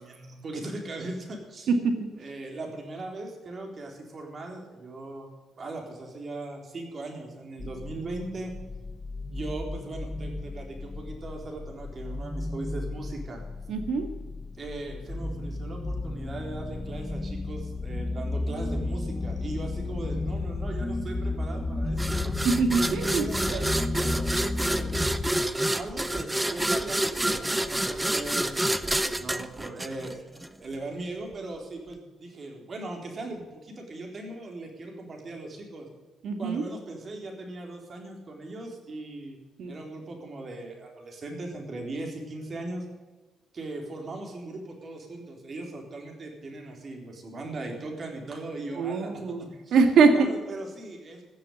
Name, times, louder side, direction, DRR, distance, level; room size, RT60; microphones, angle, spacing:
voice 1, 0.0-1.7 2.2-5.3 5.6-8.5 9.3-13.4 14.6-22.3 23.2-24.3 24.8-24.9 25.7-30.2 30.6-35.9 36.4-39.4 39.7-42.9 43.5-49.8 50.1-51.2, right 2 dB, 40° right, 2 dB, 3.9 m, -39 dB
sound 1, 7.6-25.3, left 2 dB, 20° left, 0.9 m, -33 dB
voice 2, 13.7-14.1 22.4-23.3 23.5-23.7 36.2-36.6 39.6-39.7 48.8-49.4 49.7-50.1, right 5 dB, 70° right, 5 dB, 2.0 m, -23 dB
sound 2, 22.0-30.5, right 1 dB, 10° right, 0.8 m, -28 dB
15.5 x 7.3 x 8.1 m, 1.3 s
cardioid pair, 90°, 0 cm